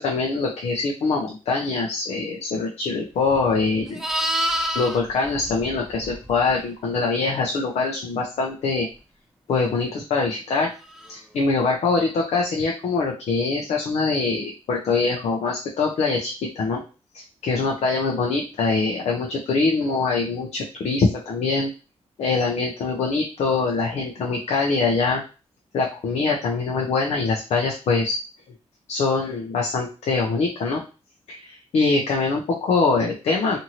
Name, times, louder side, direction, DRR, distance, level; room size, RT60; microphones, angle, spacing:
voice 1, 0.0-4.0 4.7-8.9 9.5-10.7 11.1-16.8 17.1-21.7 22.2-25.2 25.7-28.1 28.9-30.8 31.3-33.6, left 4 dB, 75° left, 0 dB, 0.5 m, -23 dB
Livestock farm animals working animals, 3.3-6.5 10.9-11.1, equal, 5° right, 0.5 m, -28 dB
2.7 x 2.6 x 2.9 m, 0.33 s
cardioid pair, 90°, 11 cm